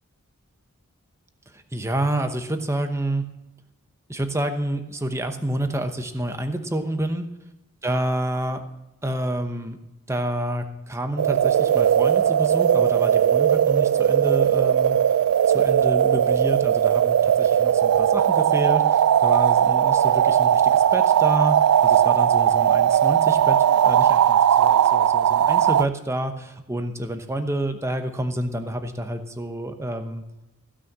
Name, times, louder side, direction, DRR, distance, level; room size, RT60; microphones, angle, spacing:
voice 1, 1.5-3.3 4.1-7.3 7.8-8.6 9.0-9.8 10.1-15.0 15.5-30.2, right 1 dB, 15° right, 7 dB, 0.9 m, -28 dB
sound 1, 11.2-25.8, right 9 dB, 80° right, 0.3 m, -18 dB
15.5 x 6.3 x 7.5 m, 0.98 s
head